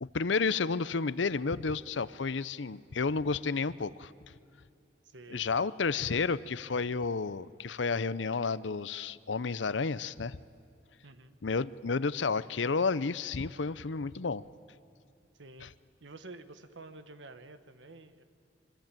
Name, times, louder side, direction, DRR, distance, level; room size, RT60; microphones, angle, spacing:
voice 1, 0.0-4.1 5.3-10.4 11.4-14.4 15.6-15.7, left 4 dB, 80° left, 18 dB, 0.7 m, -31 dB
voice 2, 5.0-5.7 6.0-6.2 11.0-11.4 15.3-15.7 16.0-18.2, right 2 dB, 85° right, 11 dB, 1.5 m, -50 dB
25.5 x 25.0 x 9.1 m, 2.6 s
head